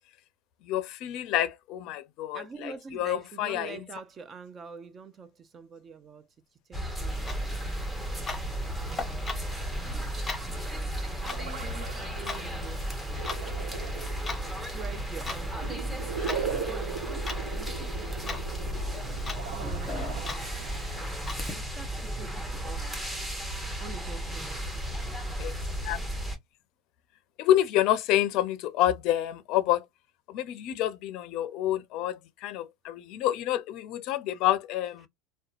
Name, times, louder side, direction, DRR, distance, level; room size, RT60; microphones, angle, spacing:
voice 1, 0.6-3.9 25.4-26.0 27.4-29.9 30.3-35.1, left 12 dB, 55° left, 0.5 m, -28 dB
voice 2, 2.3-6.3 6.7-7.7 8.8-9.6 11.4-12.9 14.3-15.8 16.5-18.9 19.2-20.6 21.5-23.0 23.8-24.7, right 5 dB, 30° right, 0.5 m, -46 dB
sound 1, 6.7-26.4, right 1 dB, 10° right, 0.9 m, -34 dB
Clock, 7.1-21.5, left 4 dB, 20° left, 0.8 m, -41 dB
sound 2, 11.0-21.0, right 6 dB, 90° right, 0.9 m, -39 dB
2.8 x 2.2 x 2.4 m
supercardioid pair, 115°, 0 cm